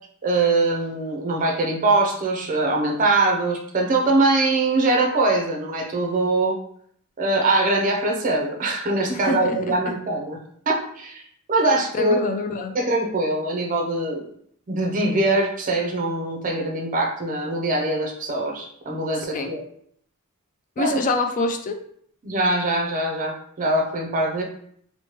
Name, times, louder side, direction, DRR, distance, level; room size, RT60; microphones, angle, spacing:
voice 1, 0.2-6.6 7.2-10.4 10.7-11.2 11.5-12.3 12.7-14.2 14.7-19.6 20.8-21.0 22.2-24.4, right 2 dB, 35° right, 2 dB, 0.5 m, -22 dB
voice 2, 9.1-9.6 11.9-12.8 19.3-19.5 20.8-21.8, left 3 dB, 35° left, 5 dB, 0.3 m, -25 dB
3.0 x 2.1 x 2.9 m, 0.64 s
head